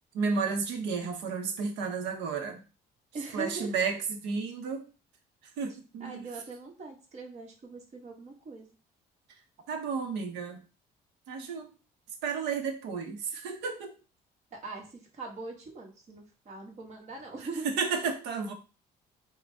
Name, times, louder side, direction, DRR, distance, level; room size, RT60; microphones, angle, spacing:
voice 1, 0.1-2.6 3.3-4.9 5.6-6.3 9.7-10.6 11.3-11.7 12.2-13.9 17.6-18.5, right 5 dB, 85° right, 5 dB, 1.0 m, -32 dB
voice 2, 3.1-3.7 6.0-8.7 11.4-11.5 14.5-17.8, right 3 dB, 40° right, 0 dB, 1.5 m, -41 dB
5.0 x 2.4 x 3.5 m, 0.33 s
cardioid pair, 110°, 17 cm